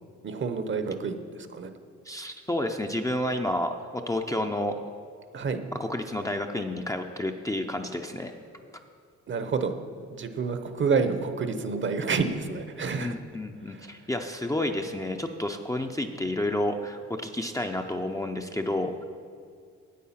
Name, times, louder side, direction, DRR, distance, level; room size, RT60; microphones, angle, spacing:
voice 1, 0.2-1.7 5.3-5.6 9.3-9.8 10.1-13.2 13.7-13.9, right 5 dB, 40° right, 9 dB, 0.8 m, -29 dB
voice 2, 2.1-4.7 5.8-8.3 13.0-19.0, left 1 dB, 10° left, 4 dB, 0.5 m, -30 dB
8.5 x 8.4 x 5.7 m, 2.2 s
cardioid pair, 90°, 30 cm